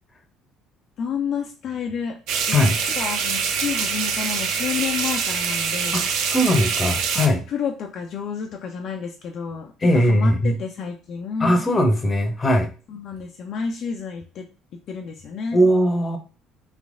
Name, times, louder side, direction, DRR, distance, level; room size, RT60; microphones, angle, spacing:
voice 1, 1.0-2.2 2.5-6.1 7.2-11.5 12.9-14.4 14.9-15.6, left 6 dB, 50° left, 2 dB, 0.4 m, -30 dB
sound 1, 2.3-7.3, right 6 dB, 60° right, 0.4 m, -25 dB
voice 2, 5.9-7.4 9.8-10.6 11.4-12.7 15.5-16.2, equal, 25° left, 6 dB, 0.7 m, -19 dB
3.3 x 3.1 x 2.5 m, 0.35 s
figure-of-eight pair, 55°, 0 cm